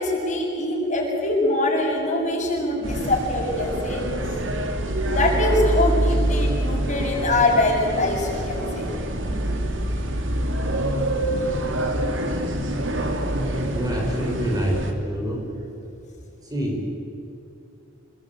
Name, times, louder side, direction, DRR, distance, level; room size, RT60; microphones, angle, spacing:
voice 1, 0.0-4.0 4.3-4.4 5.1-8.9, left 2 dB, 40° left, -1 dB, 7.2 m, -23 dB
sound 1, 2.8-14.9, right 1 dB, 80° right, 3.1 m, -25 dB
voice 2, 13.7-15.6 16.4-16.9, equal, 20° right, 0 dB, 5.0 m, -27 dB
28.5 x 21.0 x 9.3 m, 2.9 s
head